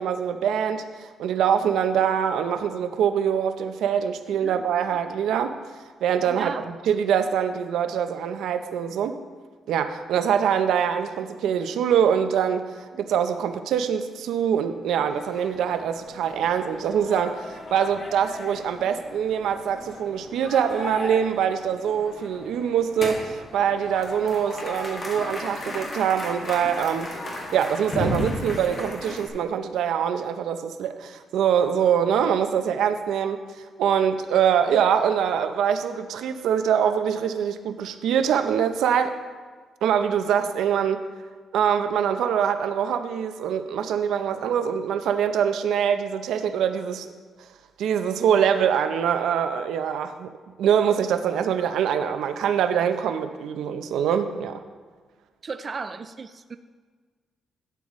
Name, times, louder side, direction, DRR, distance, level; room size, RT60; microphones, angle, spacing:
voice 1, 0.0-5.5 6.0-9.2 9.7-27.1 27.5-39.2 39.8-41.1 41.5-47.1 47.8-50.3 50.6-54.6, right 8 dB, 85° right, 9 dB, 0.6 m, -24 dB
voice 2, 4.4-5.0 6.3-6.7 12.9-13.0 55.4-56.6, right 4 dB, 30° right, 9 dB, 0.3 m, -36 dB
sound 1, 15.1-29.3, left 1 dB, 40° left, 2.0 m, -35 dB
12.5 x 8.9 x 3.1 m, 1.5 s
cardioid pair, 155°, 0 cm